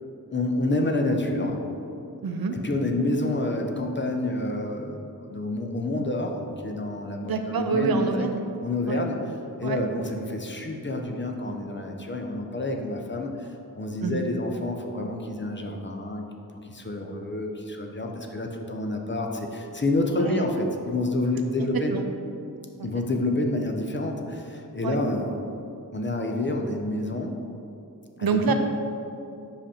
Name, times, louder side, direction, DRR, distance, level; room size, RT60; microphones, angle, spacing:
voice 1, 0.3-1.6 2.5-8.3 8.6-16.2 16.6-21.9 22.8-25.4 25.9-27.4 28.2-28.5, left 2 dB, 30° left, 3 dB, 0.6 m, -28 dB
voice 2, 2.2-2.5 7.3-8.4 8.9-9.0 9.6-9.8 14.0-14.2 20.1-20.4 21.9-22.0 24.8-25.0 28.2-28.5, right 5 dB, 75° right, 6 dB, 0.6 m, -26 dB
5.1 x 5.1 x 4.3 m, 2.7 s
wide cardioid pair, 70°, 36 cm